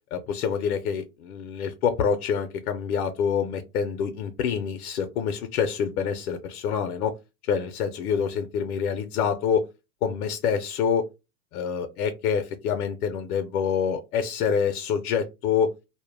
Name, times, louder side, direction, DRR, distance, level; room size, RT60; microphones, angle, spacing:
voice 1, 0.1-7.1 7.5-9.6 10.0-11.1 11.5-15.7, left 7 dB, 65° left, 0.5 m, -26 dB
2.1 x 2.1 x 3.1 m
hypercardioid pair, 140°, 48 cm